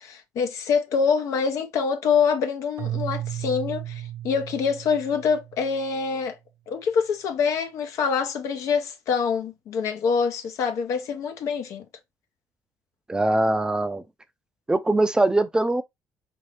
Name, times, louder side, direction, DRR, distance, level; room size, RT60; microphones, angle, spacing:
voice 1, 0.0-6.4 6.7-11.8, left 6 dB, 70° left, 0.9 m, -25 dB
Keyboard (musical), 2.8-5.9, right 12 dB, 65° right, 0.5 m, -34 dB
voice 2, 13.1-14.0 14.7-15.8, right 2 dB, 15° right, 0.5 m, -22 dB
3.9 x 2.8 x 3.2 m
supercardioid pair, 80°, 5 cm